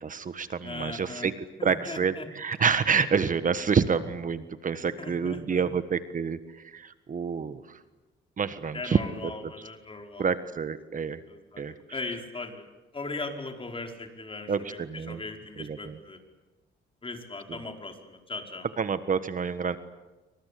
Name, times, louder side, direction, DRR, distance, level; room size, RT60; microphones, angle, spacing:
voice 1, 0.0-1.3 1.6-7.8 8.4-9.3 10.2-11.2 11.6-11.7 14.5-15.2 15.6-16.0 18.8-19.8, right 6 dB, 40° right, 12 dB, 1.5 m, -28 dB
voice 2, 0.6-1.3 1.6-2.3 5.0-5.7 8.7-10.3 11.3-12.6 12.9-16.2 17.0-18.7, left 3 dB, 25° left, 4 dB, 5.0 m, -39 dB
27.5 x 25.0 x 8.5 m, 1.1 s
cardioid pair, 90°, 20 cm